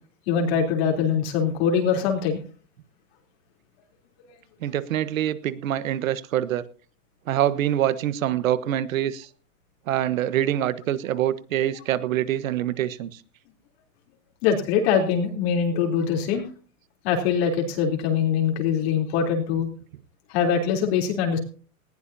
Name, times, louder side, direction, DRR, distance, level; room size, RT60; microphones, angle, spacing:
voice 1, 0.3-2.4 4.2-4.3 14.4-16.4 17.0-19.7 20.3-21.4, left 7 dB, 45° left, 2 dB, 3.6 m, -23 dB
voice 2, 4.6-6.6 7.3-9.3 9.9-13.2, right 11 dB, 70° right, 15 dB, 1.4 m, -25 dB
19.5 x 16.0 x 2.8 m, 0.38 s
hypercardioid pair, 150°, 42 cm